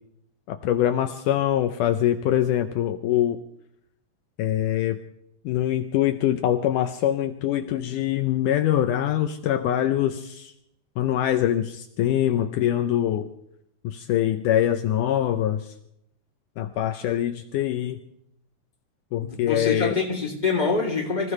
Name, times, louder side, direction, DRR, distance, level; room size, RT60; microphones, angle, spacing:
voice 1, 0.5-3.4 4.4-5.0 5.5-10.5 11.0-13.3 13.8-15.7 16.6-18.0 19.1-20.0, left 11 dB, 85° left, 6 dB, 1.8 m, -24 dB
voice 2, 19.2-21.3, left 4 dB, 10° left, -1 dB, 2.8 m, -25 dB
25.5 x 16.0 x 3.3 m, 0.75 s
omnidirectional pair, 4.6 m